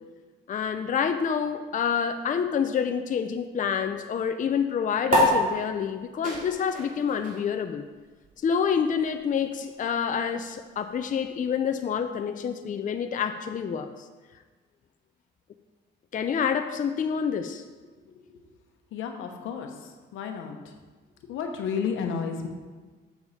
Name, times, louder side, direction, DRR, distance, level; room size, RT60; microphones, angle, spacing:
voice 1, 0.5-7.8 8.4-13.9 16.1-17.6, left 7 dB, 40° left, 7 dB, 0.5 m, -27 dB
sound 1, 5.1-11.9, equal, 40° right, 2.5 m, -30 dB
voice 2, 18.9-20.6 21.3-22.5, left 6 dB, 85° left, 4 dB, 1.0 m, -32 dB
7.1 x 6.9 x 4.1 m, 1.4 s
cardioid pair, 90°, 20 cm